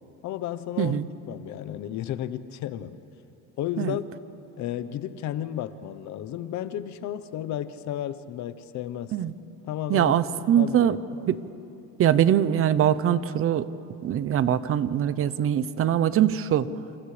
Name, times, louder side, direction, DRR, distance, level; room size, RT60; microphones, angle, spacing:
voice 1, 0.2-1.0 1.3-3.0 3.6-4.0 4.6-9.2 9.7-10.1 10.6-11.0, left 11 dB, 60° left, 13 dB, 1.0 m, -33 dB
voice 2, 9.9-11.0 11.3-11.4 12.0-13.7 14.0-16.7, right 10 dB, 45° right, 15 dB, 0.8 m, -22 dB
29.0 x 28.5 x 3.4 m, 2.8 s
cardioid pair, 120°, 32 cm